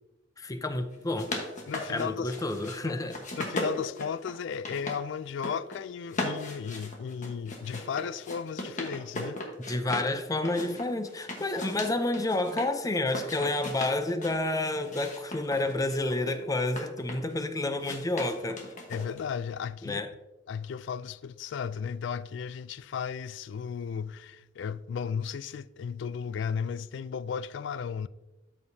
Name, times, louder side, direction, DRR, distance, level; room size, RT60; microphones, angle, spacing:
voice 1, 0.4-1.3 1.9-3.2 9.7-18.6 19.8-20.1, left 2 dB, 20° left, 0.5 m, -30 dB
sound 1, 0.9-2.8 3.1-5.0 5.3-5.8 6.1-10.1 10.4-12.7 13.0-14.4 14.8-17.3 17.8-19.3, left 1 dB, 40° left, 1.3 m, -37 dB
voice 2, 1.7-2.3 2.8-2.9 3.4-9.4 18.9-20.0 20.5-28.1, left 7 dB, 65° left, 0.3 m, -35 dB
12.5 x 5.3 x 2.7 m
head